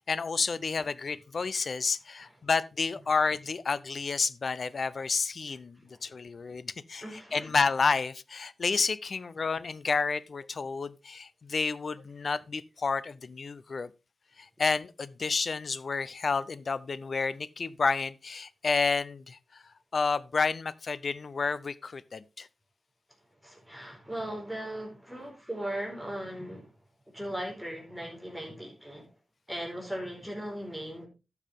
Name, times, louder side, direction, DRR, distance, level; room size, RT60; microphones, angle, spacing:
voice 1, 0.0-13.9 14.4-19.6 19.9-22.5, left 4 dB, 60° left, 0.6 m, -30 dB
voice 2, 7.0-7.5 23.4-26.7 27.1-29.1 29.5-31.1, right 1 dB, ahead, 4.5 m, -38 dB
12.0 x 7.2 x 3.6 m
cardioid pair, 65°, 0 cm